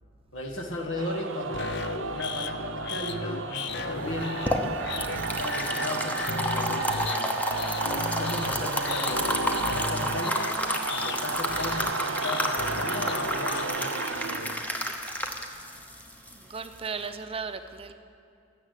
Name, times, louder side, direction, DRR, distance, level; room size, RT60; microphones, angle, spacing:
voice 1, 0.3-1.8 2.1-4.4 5.2-7.5 8.2-10.6 10.9-14.5, left 1 dB, 85° left, 3 dB, 1.6 m, -36 dB
sound 1, 1.0-15.1, right 5 dB, 85° right, 0.6 m, -34 dB
sound 2, 1.5-13.7, left 4 dB, 60° left, 0.6 m, -35 dB
sound 3, 4.1-17.1, equal, 10° left, 0.9 m, -31 dB
voice 2, 16.3-17.9, right 5 dB, 30° right, 8 dB, 0.6 m, -36 dB
13.0 x 7.4 x 9.8 m, 2.5 s
head